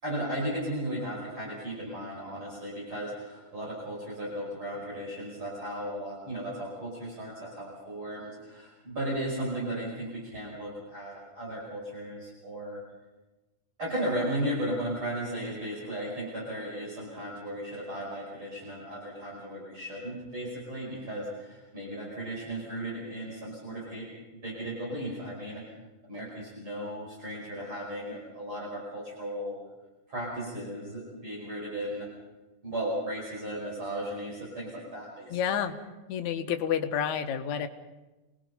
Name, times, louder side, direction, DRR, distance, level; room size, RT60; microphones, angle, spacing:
voice 1, 0.0-12.8 13.8-25.6 26.1-29.6 30.1-32.1 32.6-35.7, right 1 dB, 40° right, -5 dB, 6.4 m, -35 dB
voice 2, 35.3-35.8 36.1-37.7, left 8 dB, 70° left, 7 dB, 2.4 m, -29 dB
28.5 x 20.0 x 5.5 m, 1.1 s
omnidirectional pair, 3.6 m